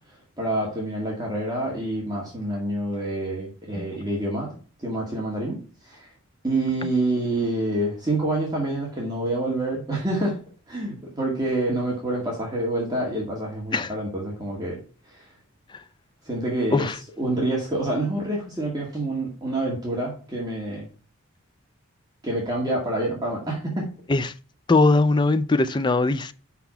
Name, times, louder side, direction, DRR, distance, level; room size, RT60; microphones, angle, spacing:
voice 1, 0.4-4.5 4.8-5.6 5.8-6.1 6.4-10.4 10.7-14.8 15.1-15.2 16.3-16.9 17.2-20.8 22.2-23.9, right 1 dB, 20° right, 2.1 m, -27 dB
voice 2, 24.7-26.3, left 3 dB, 20° left, 0.3 m, -20 dB
5.9 x 5.7 x 5.5 m
head